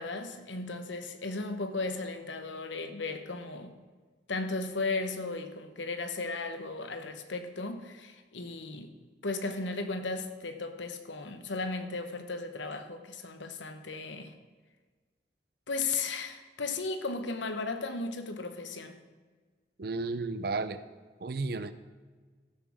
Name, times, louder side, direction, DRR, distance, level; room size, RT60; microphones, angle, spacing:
voice 1, 0.0-3.8 4.3-8.9 9.2-14.3 15.7-19.0, left 3 dB, 85° left, 1.0 m, -35 dB
voice 2, 19.8-20.8 21.2-21.7, right 3 dB, 55° right, 0.5 m, -33 dB
14.5 x 6.3 x 6.1 m
head